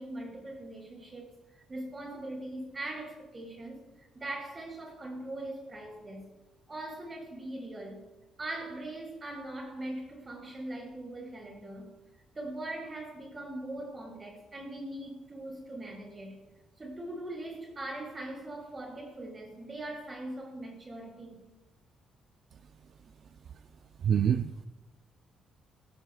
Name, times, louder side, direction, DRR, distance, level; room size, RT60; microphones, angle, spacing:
voice 1, 0.0-6.3 6.7-8.0 8.4-11.9 12.3-16.4 16.8-21.4, right 1 dB, 30° right, 6.6 m, -41 dB
voice 2, 24.0-24.7, right 8 dB, 60° right, 0.4 m, -26 dB
21.5 x 17.5 x 2.4 m
cardioid pair, 90°, 0 cm